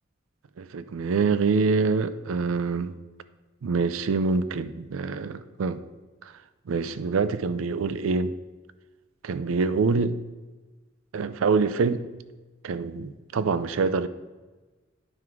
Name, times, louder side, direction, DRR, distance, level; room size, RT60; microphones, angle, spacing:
voice 1, 0.6-3.0 3.6-5.8 6.7-8.4 9.2-10.2 11.1-12.0 12.6-14.1, right 4 dB, 85° right, 0.4 m, -25 dB
9.5 x 3.6 x 4.5 m
head